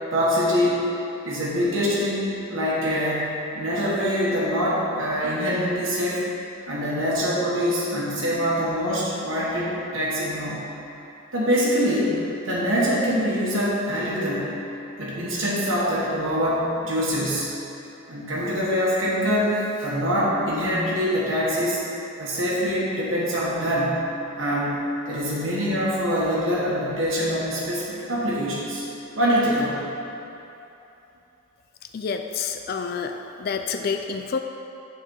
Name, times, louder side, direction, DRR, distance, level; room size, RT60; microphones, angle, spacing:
voice 1, 0.1-0.8 1.2-6.2 6.7-10.6 11.3-14.5 15.0-17.5 18.1-21.8 22.2-24.0 24.4-24.8 25.1-28.8 29.1-29.8, equal, 85° right, -7 dB, 1.5 m, -24 dB
voice 2, 31.9-33.1 33.4-34.4, left 5 dB, 50° left, 6 dB, 0.3 m, -28 dB
7.1 x 4.7 x 6.3 m, 2.8 s
head